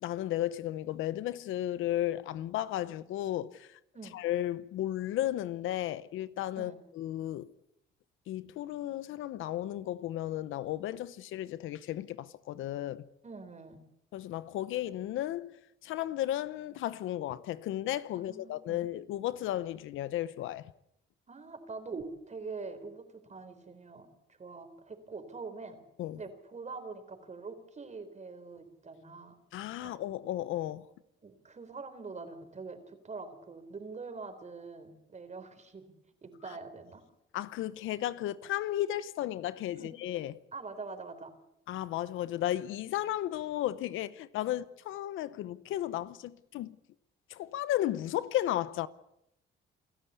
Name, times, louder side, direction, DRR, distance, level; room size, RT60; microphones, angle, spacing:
voice 1, 0.0-3.8 4.1-7.5 8.3-13.1 14.1-15.6 15.8-20.7 26.0-26.2 29.5-30.9 37.3-40.4 41.7-46.8 47.3-48.9, left 13 dB, 85° left, 0.9 m, -34 dB
voice 2, 13.2-13.8 18.3-18.8 21.3-24.1 24.4-25.8 26.2-29.4 29.8-29.9 31.2-35.9 36.2-37.0 39.8-39.9 40.5-41.3 44.5-44.6, right 4 dB, 35° right, 4.1 m, -44 dB
28.5 x 13.0 x 8.3 m
cardioid pair, 90°, 20 cm